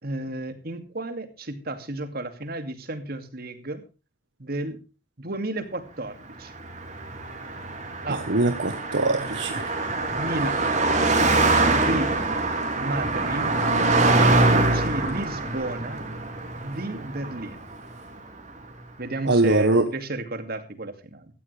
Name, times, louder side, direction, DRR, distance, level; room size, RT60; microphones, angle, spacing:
voice 1, 0.0-3.8 4.4-4.8 5.2-6.5 8.0-8.3 10.2-10.7 11.7-12.2 12.7-13.7 14.7-16.0 16.6-17.7 19.0-21.3, right 2 dB, 55° right, 9 dB, 2.4 m, -32 dB
Car passing by, 6.6-18.1, right 2 dB, 40° right, 3.8 m, -24 dB
voice 2, 8.1-9.7 19.3-19.9, right 2 dB, 70° right, 8 dB, 1.3 m, -22 dB
17.0 x 14.5 x 3.4 m, 0.31 s
head